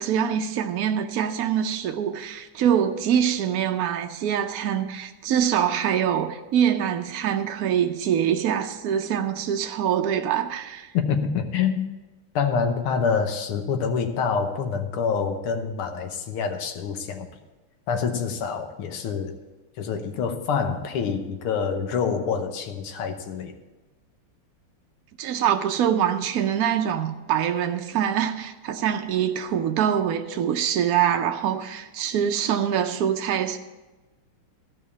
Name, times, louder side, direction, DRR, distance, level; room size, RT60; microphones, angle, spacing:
voice 1, 0.0-10.9 25.2-33.6, right 9 dB, 80° right, 0.8 m, -24 dB
voice 2, 10.9-11.9 12.4-17.3 17.9-19.4 19.8-23.5, left 6 dB, 85° left, 1.9 m, -26 dB
13.5 x 5.4 x 8.2 m
omnidirectional pair, 2.3 m